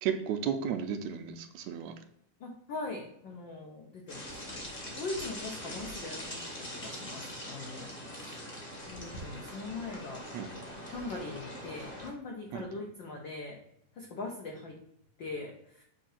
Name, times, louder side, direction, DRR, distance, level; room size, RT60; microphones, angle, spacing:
voice 1, 0.0-1.9 10.3-10.5 12.5-12.7, right 8 dB, 80° right, 6 dB, 1.8 m, -33 dB
voice 2, 2.4-4.6 5.0-8.5 8.9-10.3 10.9-13.6 13.9-14.8 15.2-15.8, left 3 dB, 85° left, 0 dB, 1.0 m, -41 dB
sound 1, 4.1-12.1, equal, 40° left, 0.8 m, -42 dB
6.9 x 2.8 x 5.6 m, 0.73 s
omnidirectional pair, 3.4 m